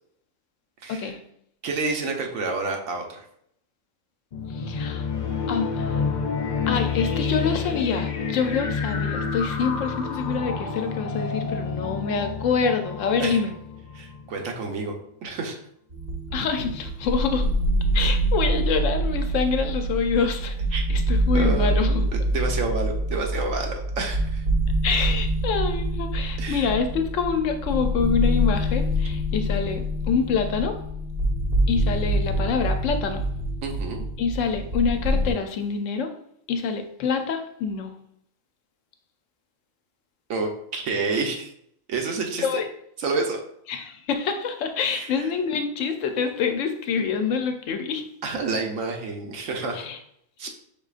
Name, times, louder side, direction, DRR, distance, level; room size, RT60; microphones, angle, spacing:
voice 1, 0.8-1.1 1.6-3.2 13.2-13.4 13.9-15.0 15.2-15.6 20.7-20.8 21.3-24.4 26.4-26.7 33.6-34.0 40.3-41.5 41.9-42.6 43.0-43.4 44.9-45.3 48.2-49.9 50.4-50.5, right 4 dB, 75° right, 3 dB, 1.2 m, -29 dB
sound 1, 4.3-14.5, left 5 dB, 55° left, 0.5 m, -29 dB
voice 2, 4.5-5.0 5.5-6.0 6.7-13.5 16.3-17.5 17.9-22.0 24.8-30.7 31.7-33.2 34.2-36.1 36.5-37.9 42.4-42.6 43.7-48.0 49.7-50.0, left 5 dB, 70° left, 6 dB, 0.9 m, -26 dB
sound 2, 15.9-35.3, right 1 dB, 50° right, 1.0 m, -25 dB
5.4 x 3.8 x 2.4 m, 0.72 s
omnidirectional pair, 1.4 m